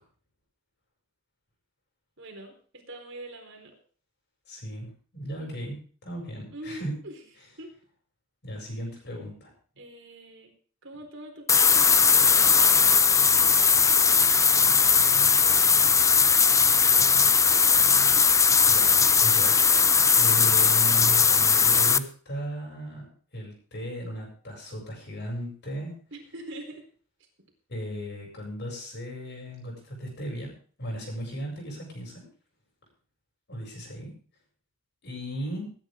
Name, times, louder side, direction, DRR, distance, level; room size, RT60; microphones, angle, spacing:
voice 1, 2.2-3.8 6.5-7.7 9.8-10.5 10.8-12.8 13.4-13.6 26.1-26.9, right 1 dB, 65° right, 2 dB, 4.3 m, -43 dB
voice 2, 4.5-4.9 5.1-6.9 8.4-9.5 14.6-14.9 18.6-19.8 20.1-25.9 27.7-30.5 30.8-32.2 33.5-34.1 35.0-35.7, equal, 60° left, 0 dB, 7.5 m, -36 dB
sound 1, 11.5-22.0, left 6 dB, 15° left, 0.5 m, -19 dB
20.5 x 10.5 x 3.8 m, 0.43 s
head